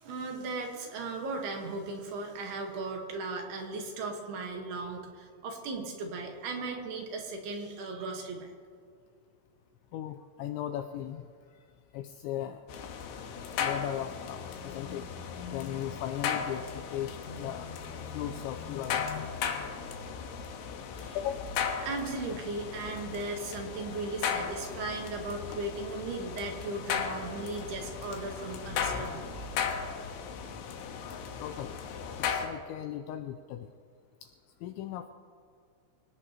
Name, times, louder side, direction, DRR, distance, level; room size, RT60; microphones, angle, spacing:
voice 1, 0.0-8.5 20.9-21.2 21.8-29.2, right 3 dB, 65° right, 2 dB, 2.9 m, -37 dB
voice 2, 9.9-12.7 13.6-15.1 15.5-17.7 18.1-19.2 21.1-21.6 31.4-31.8 32.2-33.7 34.2-34.3 34.6-35.1, left 11 dB, 90° left, 7 dB, 2.6 m, -38 dB
sound 1, 12.7-32.5, left 7 dB, 70° left, 3.1 m, -36 dB
24.5 x 18.0 x 3.0 m, 2.2 s
omnidirectional pair, 5.8 m